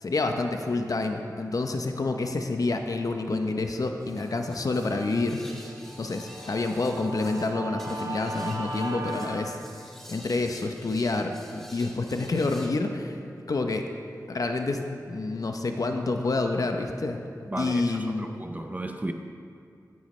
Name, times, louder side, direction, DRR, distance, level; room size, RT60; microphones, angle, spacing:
voice 1, 0.0-5.4 6.0-9.6 10.1-13.2 13.5-13.9 14.3-17.2 17.6-18.4, left 3 dB, 55° left, 5 dB, 0.7 m, -28 dB
Guitar, 3.9-9.4, right 2 dB, 50° right, 1.1 m, -39 dB
sound 1, 4.0-12.7, equal, 5° left, 1.4 m, -49 dB
voice 2, 17.5-19.1, right 1 dB, 20° right, 5 dB, 0.5 m, -34 dB
14.0 x 9.4 x 3.2 m, 2.4 s
wide cardioid pair, 90°, 7 cm